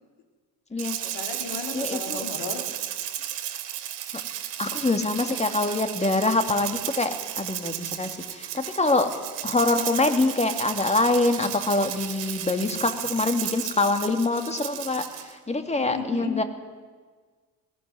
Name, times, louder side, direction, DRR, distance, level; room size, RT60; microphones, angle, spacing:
Rattle (instrument), 0.8-15.3, right 12 dB, 75° right, 2.4 m, -34 dB
voice 1, 1.0-2.6 12.4-12.8 15.8-16.4, left 6 dB, 60° left, 3 dB, 4.3 m, -35 dB
voice 2, 1.7-2.2 4.1-4.2 4.6-9.1 9.4-16.4, left 2 dB, 15° left, 7 dB, 2.6 m, -25 dB
20.0 x 16.5 x 9.7 m, 1.5 s
hypercardioid pair, 60°, 49 cm